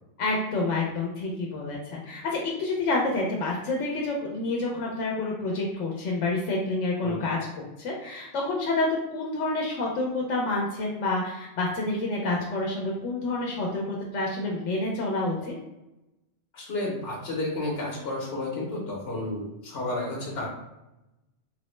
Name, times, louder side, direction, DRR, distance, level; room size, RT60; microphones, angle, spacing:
voice 1, 0.2-7.4 7.8-15.5, left 2 dB, 85° left, -2 dB, 0.9 m, -28 dB
voice 2, 16.5-20.5, left 2 dB, 65° left, -3 dB, 0.9 m, -31 dB
3.2 x 2.0 x 3.0 m, 0.96 s
omnidirectional pair, 1.2 m